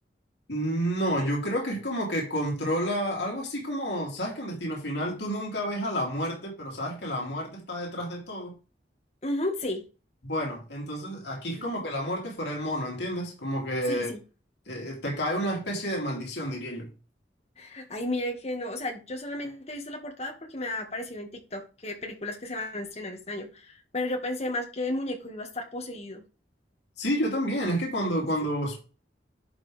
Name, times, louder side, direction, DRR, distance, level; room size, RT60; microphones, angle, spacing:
voice 1, 0.5-8.6 10.2-14.1 14.7-16.9 27.0-28.8, equal, 80° left, 3.0 m, -30 dB
voice 2, 9.2-9.8 11.5-11.8 13.9-14.2 17.6-26.2, left 1 dB, 40° left, 1.8 m, -33 dB
11.0 x 5.0 x 3.5 m
head